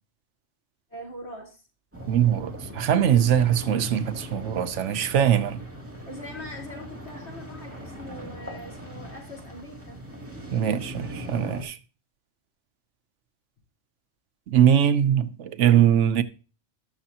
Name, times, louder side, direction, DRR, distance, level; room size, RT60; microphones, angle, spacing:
voice 1, 0.9-1.6 6.1-10.0, left 1 dB, 65° left, 4.3 m, -41 dB
sound 1, 1.9-11.6, right 1 dB, 10° right, 2.3 m, -39 dB
voice 2, 2.1-5.6 10.5-11.8 14.5-16.2, right 9 dB, 85° right, 1.1 m, -21 dB
20.0 x 6.7 x 2.9 m
omnidirectional pair, 1.2 m